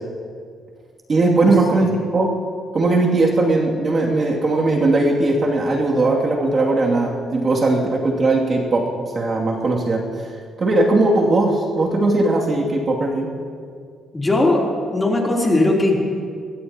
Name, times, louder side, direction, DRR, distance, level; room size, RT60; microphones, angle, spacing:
voice 1, 1.1-2.3 2.7-8.8 9.1-10.3 10.6-13.3, right 2 dB, 40° right, -2 dB, 2.5 m, -19 dB
voice 2, 14.1-14.6 14.9-16.1, left 2 dB, 20° left, -2 dB, 3.3 m, -18 dB
22.0 x 18.0 x 2.9 m, 2.2 s
cardioid pair, 90°, 0 cm